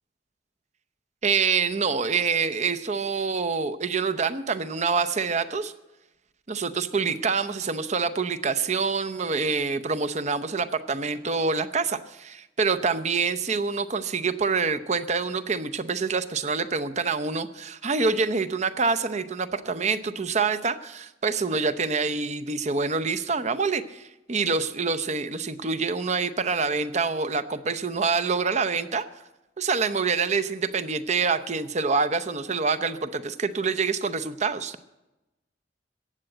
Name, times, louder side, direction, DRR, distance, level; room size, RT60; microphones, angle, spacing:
voice 1, 1.2-5.7 6.5-29.0 29.6-34.8, right 4 dB, 40° right, 11 dB, 0.7 m, -26 dB
15.0 x 8.9 x 7.8 m, 0.99 s
head